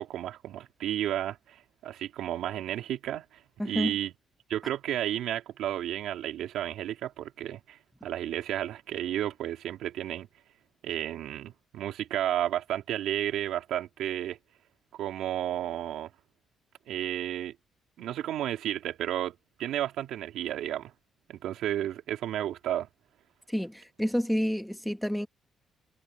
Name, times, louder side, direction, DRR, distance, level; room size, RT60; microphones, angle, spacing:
voice 1, 0.0-3.2 3.6-4.1 4.5-10.3 10.8-14.4 15.0-16.1 16.9-17.5 18.0-20.9 21.3-22.9, right 12 dB, 80° right, 3.1 m, -32 dB
voice 2, 3.6-3.9 23.5-25.3, equal, ahead, 1.7 m, -29 dB
cardioid pair, 90°, 0 cm